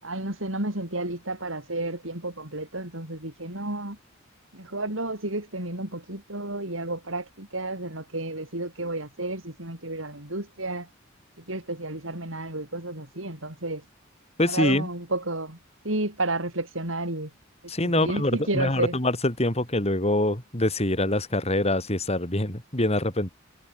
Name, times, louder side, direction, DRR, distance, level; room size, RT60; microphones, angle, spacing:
voice 1, 0.0-4.0 4.5-10.9 11.5-13.8 14.4-15.6 15.8-17.3 17.8-19.0, right 2 dB, 75° right, 7.1 m, -31 dB
voice 2, 14.4-14.9 17.7-23.3, left 1 dB, 30° left, 4.2 m, -25 dB
head